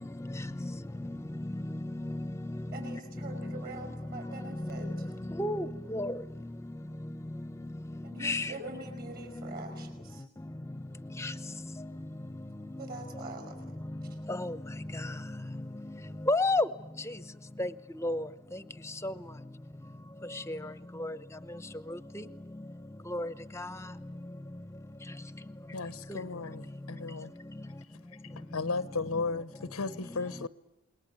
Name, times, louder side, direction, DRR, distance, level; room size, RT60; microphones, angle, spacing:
voice 1, 0.2-0.7 1.0-1.2 1.8-2.3 2.8-3.0 3.4-3.6 4.8-4.9 5.4-6.2 8.2-8.5 11.2-11.4 12.7-12.9 13.2-13.3 14.3-14.6 16.3-16.7 17.6-17.7 18.0-18.3 19.0-19.1 20.5-20.6 21.0-21.2 21.9-22.2 23.1-23.7 26.1-26.2, left 2 dB, 15° left, 0.8 m, -32 dB
voice 2, 2.7-4.9 8.0-10.2 12.8-13.6, right 3 dB, 45° right, 5.5 m, -44 dB
voice 3, 25.7-27.3 28.4-30.5, left 3 dB, 90° left, 0.9 m, -35 dB
28.0 x 21.0 x 8.4 m
head